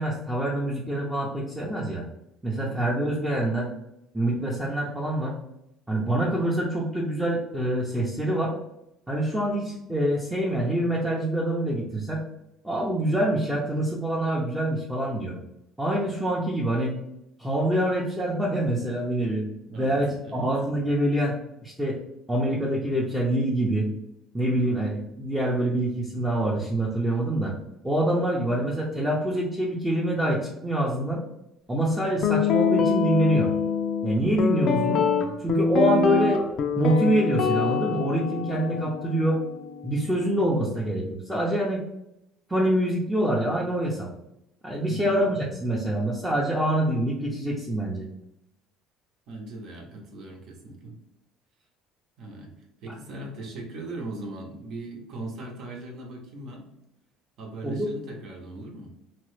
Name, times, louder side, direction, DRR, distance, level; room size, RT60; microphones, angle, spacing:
voice 1, 0.0-2.0 2.4-3.7 4.1-5.4 5.9-8.6 9.1-12.2 12.6-15.3 15.8-17.0 17.4-19.4 19.8-20.1 20.3-22.0 22.3-23.9 24.3-27.5 27.8-31.2 31.7-33.5 34.0-35.1 35.4-36.4 36.8-39.4 39.8-41.8 42.5-44.1 44.6-48.1 57.6-57.9, right 1 dB, 10° right, -5 dB, 0.6 m, -25 dB
voice 2, 2.5-2.9 19.6-20.5 24.6-24.7 44.8-45.1 49.3-50.9 52.2-52.5 52.8-56.7 57.4-58.9, right 2 dB, 60° right, 1 dB, 0.8 m, -39 dB
Guitar, 32.2-40.4, left 5 dB, 55° left, 0.4 m, -25 dB
2.9 x 2.2 x 3.1 m, 0.84 s
supercardioid pair, 105°, 0 cm